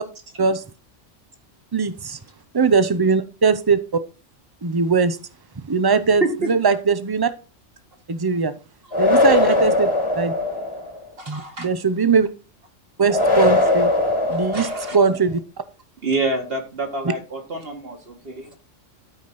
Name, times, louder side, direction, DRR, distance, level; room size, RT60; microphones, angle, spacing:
voice 1, 1.7-2.2 2.5-4.0 4.6-5.2 5.6-7.3 8.1-8.5 9.0-9.9 10.2-10.3 11.3-12.3 13.0-13.9 14.3-15.4, right 5 dB, 25° right, 13 dB, 0.7 m, -20 dB
voice 2, 6.2-6.5 8.9-9.0 11.2-11.7 14.3-15.0 16.0-18.6, right 2 dB, 50° right, 3 dB, 2.1 m, -27 dB
sound 1, 8.9-11.0 13.1-15.2, left 2 dB, 25° left, 1.8 m, -20 dB
13.0 x 5.1 x 4.1 m, 0.34 s
omnidirectional pair, 1.3 m